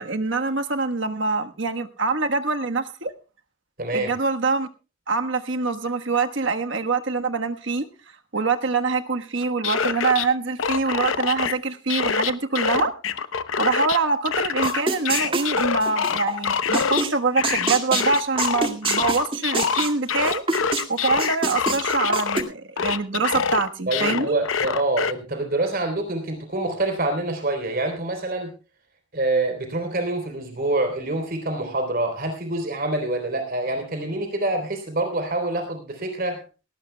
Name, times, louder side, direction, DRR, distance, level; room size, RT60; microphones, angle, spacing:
voice 1, 0.0-3.1 3.9-4.7 5.1-7.9 8.3-12.9 13.6-20.4 20.9-24.3, right 4 dB, 65° right, 6 dB, 1.3 m, -24 dB
voice 2, 3.8-4.1 23.9-28.5 29.1-36.4, right 2 dB, 50° right, 5 dB, 3.6 m, -26 dB
sound 1, 9.4-10.3 10.6-11.5 11.9-14.0 14.3-17.0 17.4-22.4 22.8-25.1, left 6 dB, 80° left, 0.8 m, -25 dB
sound 2, 14.6-16.4 16.7-17.1 17.4-20.8 21.2-22.4, right 3 dB, 25° right, 2.2 m, -25 dB
18.5 x 18.0 x 2.3 m, 0.33 s
head